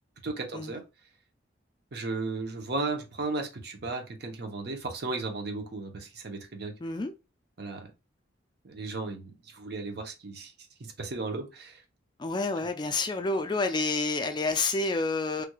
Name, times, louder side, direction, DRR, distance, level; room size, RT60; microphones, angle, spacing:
voice 1, 0.2-0.8 1.9-6.7 7.6-7.9 8.6-10.5 10.8-11.8, right 3 dB, 60° right, 0.9 m, -35 dB
voice 2, 6.8-7.1 12.2-15.5, left 3 dB, 25° left, 0.3 m, -29 dB
3.3 x 3.1 x 2.3 m
head